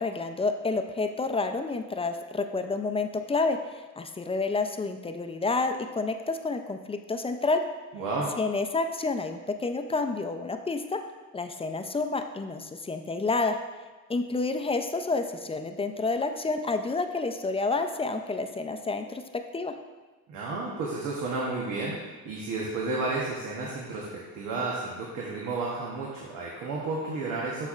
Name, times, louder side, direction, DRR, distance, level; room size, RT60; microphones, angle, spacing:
voice 1, 0.0-7.6 8.4-11.0 11.3-13.6 14.1-19.2 19.5-19.7, left 3 dB, 20° left, 6 dB, 0.5 m, -29 dB
voice 2, 7.9-8.3 20.3-27.7, right 3 dB, 90° right, -4 dB, 1.0 m, -32 dB
12.0 x 4.1 x 2.4 m, 1.3 s
cardioid pair, 90°, 30 cm